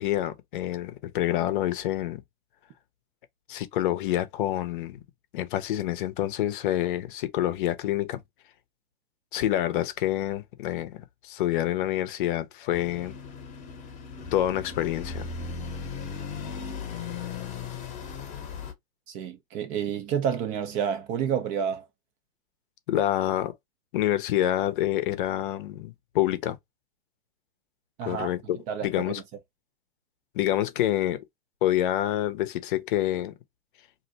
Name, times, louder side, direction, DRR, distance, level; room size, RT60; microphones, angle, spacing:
voice 1, 0.0-2.2 3.5-5.0 5.3-8.2 9.3-13.2 14.3-15.3 22.9-23.5 23.9-26.6 28.0-29.2 30.3-31.2 31.6-33.3, left 13 dB, 55° left, 0.6 m, -27 dB
sound 1, 12.7-18.7, left 5 dB, 25° left, 0.8 m, -37 dB
voice 2, 19.1-21.8 28.0-28.3 28.7-29.1, right 8 dB, 25° right, 0.4 m, -29 dB
2.5 x 2.1 x 3.9 m
hypercardioid pair, 130°, 31 cm